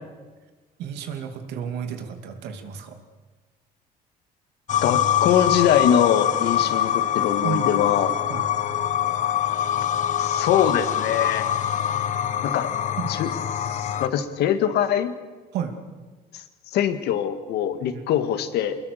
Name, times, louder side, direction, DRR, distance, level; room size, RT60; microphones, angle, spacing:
voice 1, 0.8-3.0 7.4-7.7 8.3-8.4 13.0-13.1 15.5-15.7 17.9-18.0, right 8 dB, 85° right, 6 dB, 2.7 m, -31 dB
sound 1, 4.7-14.1, left 10 dB, 45° left, 1.0 m, -24 dB
voice 2, 4.8-8.2 10.2-11.5 12.4-12.7 13.1-13.3 13.6-15.1 16.3-16.4 16.7-18.8, left 9 dB, 80° left, 9 dB, 1.9 m, -23 dB
24.5 x 21.5 x 6.7 m, 1.3 s
cardioid pair, 110°, 17 cm